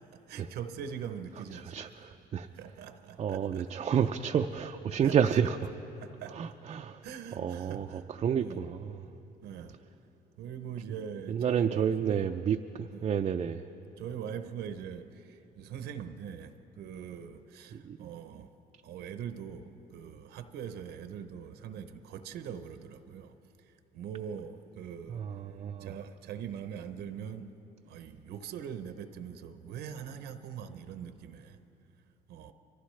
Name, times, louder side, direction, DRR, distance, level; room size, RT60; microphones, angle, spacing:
voice 1, 0.0-1.9 2.5-3.7 5.0-5.4 6.0-6.4 7.0-8.1 8.4-8.6 9.4-9.8 10.4-12.3 12.9-13.1 14.0-18.5 18.8-25.3 25.8-27.6 27.9-31.6 32.3-32.5, right 8 dB, 75° right, 9 dB, 0.8 m, -42 dB
voice 2, 1.7-2.5 3.2-5.6 6.4-7.0 7.4-7.9 8.2-8.9 11.3-13.6 17.8-18.1 25.1-25.9, right 8 dB, 35° right, 5 dB, 0.4 m, -30 dB
24.0 x 15.0 x 3.2 m, 2.9 s
cardioid pair, 110°, 17 cm